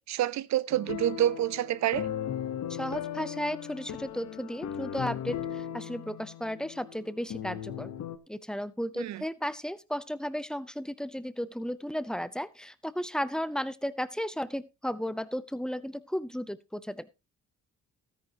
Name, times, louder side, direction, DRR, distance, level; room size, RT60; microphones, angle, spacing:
voice 1, 0.0-2.1 9.0-9.2, right 12 dB, 65° right, 0.6 m, -28 dB
sound 1, 0.7-8.2, left 9 dB, 65° left, 1.1 m, -37 dB
voice 2, 2.7-7.9 8.3-17.1, equal, ahead, 0.6 m, -34 dB
13.0 x 9.8 x 2.8 m
cardioid pair, 90°, 30 cm